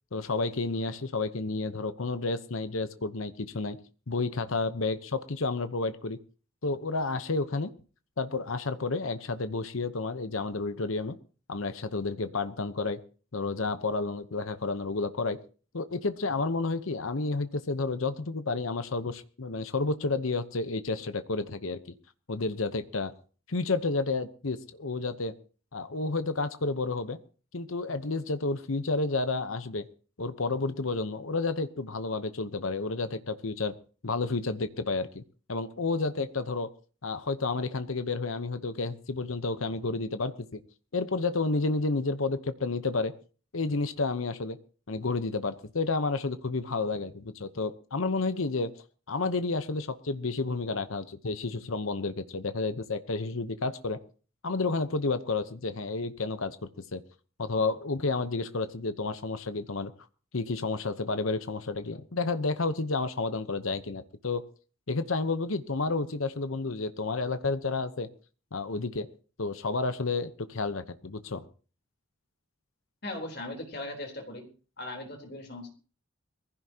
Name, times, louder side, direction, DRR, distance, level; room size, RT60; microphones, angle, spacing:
voice 1, 0.1-3.8 4.1-6.2 6.6-7.7 8.2-11.2 11.5-13.0 13.3-15.4 15.7-21.8 22.3-23.1 23.5-25.3 25.7-27.2 27.5-29.8 30.2-33.8 34.0-35.2 35.5-36.7 37.0-40.6 40.9-43.1 43.5-44.6 44.9-48.7 49.1-54.0 54.4-56.6 56.9-57.0 57.4-59.9 60.3-64.4 64.9-68.1 68.5-69.1 69.4-71.4, left 3 dB, 75° left, 11 dB, 1.0 m, -30 dB
voice 2, 73.0-74.5 74.8-75.7, left 2 dB, 50° left, 3 dB, 3.7 m, -38 dB
22.5 x 15.5 x 2.9 m, 0.38 s
head